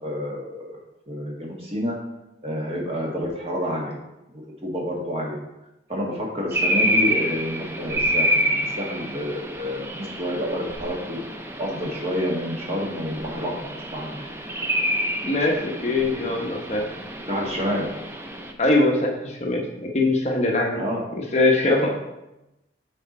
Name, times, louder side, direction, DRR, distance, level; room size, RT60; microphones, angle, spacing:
voice 1, 0.0-0.8 1.1-2.0 2.4-3.9 4.3-5.4 5.9-11.2 11.6-14.3 17.3-17.9 20.7-21.0 21.8-21.9, equal, 30° right, -2 dB, 1.3 m, -29 dB
sound 1, 6.5-18.5, equal, 15° right, 0.4 m, -28 dB
voice 2, 15.2-16.8 18.6-19.6 19.9-20.8 21.3-21.9, left 2 dB, 35° left, 0 dB, 0.9 m, -21 dB
6.4 x 4.3 x 4.2 m, 0.94 s
head